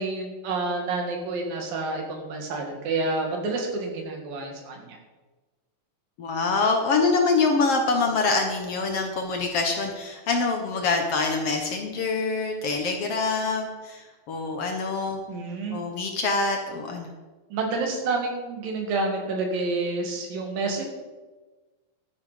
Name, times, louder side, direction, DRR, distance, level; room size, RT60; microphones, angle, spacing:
voice 1, 0.0-5.0 15.3-15.8 17.5-20.9, right 3 dB, 85° right, 2 dB, 3.8 m, -29 dB
voice 2, 6.2-15.2 15.7-17.1, left 3 dB, 60° left, 3 dB, 1.8 m, -25 dB
12.5 x 10.5 x 5.1 m, 1.3 s
omnidirectional pair, 3.9 m